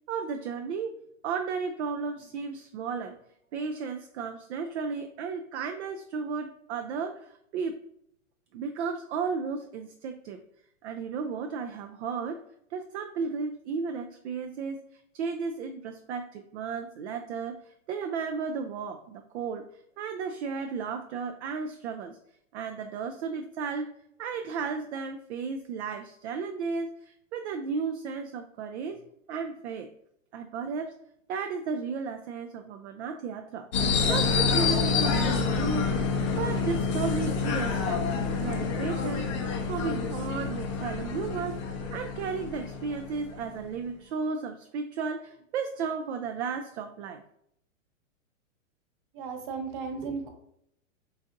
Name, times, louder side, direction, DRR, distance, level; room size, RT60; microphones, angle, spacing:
voice 1, 0.1-3.2 3.5-7.8 8.5-10.4 10.8-12.4 12.7-19.7 20.0-22.2 22.5-23.9 24.2-29.0 29.3-29.9 30.3-30.9 31.3-33.7 34.1-36.1 36.4-38.0 38.4-39.4 39.7-47.2, right 5 dB, 60° right, 6 dB, 0.5 m, -34 dB
sound 1, 33.7-43.6, left 5 dB, 25° left, 0.4 m, -28 dB
voice 2, 49.1-50.3, right 5 dB, 40° right, 5 dB, 0.8 m, -35 dB
4.0 x 3.9 x 2.5 m, 0.72 s
hypercardioid pair, 145°, 40 cm